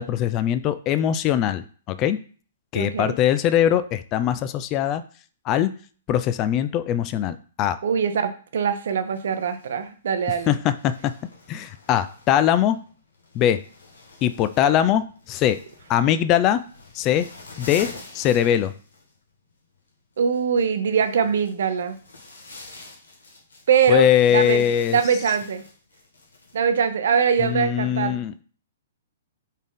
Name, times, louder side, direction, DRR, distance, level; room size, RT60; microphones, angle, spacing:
voice 1, 0.0-2.2 2.7-5.0 5.5-5.7 6.1-7.8 10.5-11.1 11.5-12.8 13.3-13.6 14.2-15.6 15.9-16.6 16.9-17.3 17.6-17.9 18.1-18.7 23.9-25.0 27.4-28.3, left 10 dB, 30° left, 14 dB, 0.3 m, -21 dB
voice 2, 2.7-3.1 7.8-10.5 20.2-22.0 23.7-24.6 24.9-25.6 26.5-28.2, right 7 dB, 65° right, 9 dB, 0.6 m, -22 dB
sound 1, 9.1-27.7, left 3 dB, 80° left, 1.3 m, -46 dB
4.0 x 3.6 x 3.7 m, 0.42 s
hypercardioid pair, 120°, 0 cm